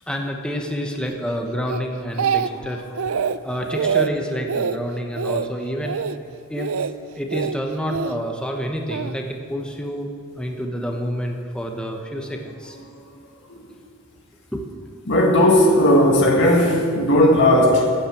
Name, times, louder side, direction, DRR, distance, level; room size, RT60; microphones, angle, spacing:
voice 1, 0.1-6.0 6.5-6.7 7.1-10.1 10.3-12.8 14.5-14.6, equal, 5° left, 1 dB, 1.1 m, -28 dB
Speech, 1.7-2.7 3.0-3.4 3.7-4.1 4.5-4.8 5.2-5.5 5.8-6.2 6.6-6.9 7.3-8.1 8.9-9.1, right 6 dB, 70° right, 0.5 m, -24 dB
voice 2, 15.1-17.9, left 1 dB, 55° left, -1 dB, 1.9 m, -16 dB
13.0 x 9.1 x 8.4 m, 2.4 s
head